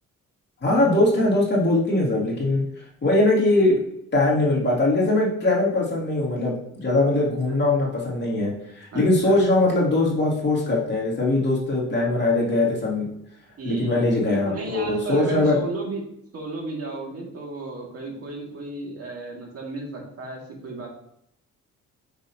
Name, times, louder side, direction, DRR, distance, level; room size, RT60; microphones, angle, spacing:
voice 1, 0.6-2.6 3.0-3.8 4.1-13.1 13.6-15.6, left 2 dB, 35° left, -3 dB, 2.5 m, -21 dB
voice 2, 7.1-7.9 8.9-9.3 13.6-14.1 14.5-16.0 16.3-20.9, right 2 dB, 50° right, -1 dB, 2.1 m, -34 dB
6.0 x 5.9 x 2.8 m, 0.75 s
cardioid pair, 90°, 30 cm